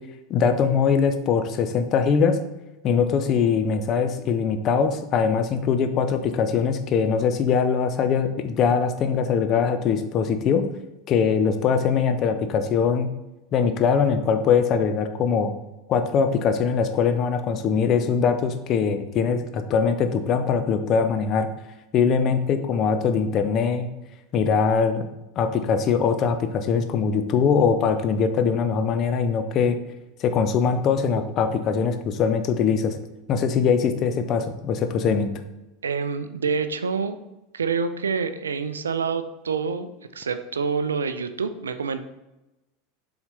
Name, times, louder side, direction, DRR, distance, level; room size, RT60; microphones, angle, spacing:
voice 1, 0.3-2.4 2.8-10.6 11.1-13.1 13.5-15.5 15.9-21.5 21.9-23.9 24.3-25.1 25.4-29.8 30.2-33.0 33.3-35.3, left 6 dB, 40° left, 8 dB, 0.6 m, -22 dB
voice 2, 35.8-37.2 37.5-42.0, right 5 dB, 80° right, 11 dB, 0.4 m, -27 dB
7.0 x 4.0 x 3.3 m, 0.98 s
figure-of-eight pair, 80°, 0 cm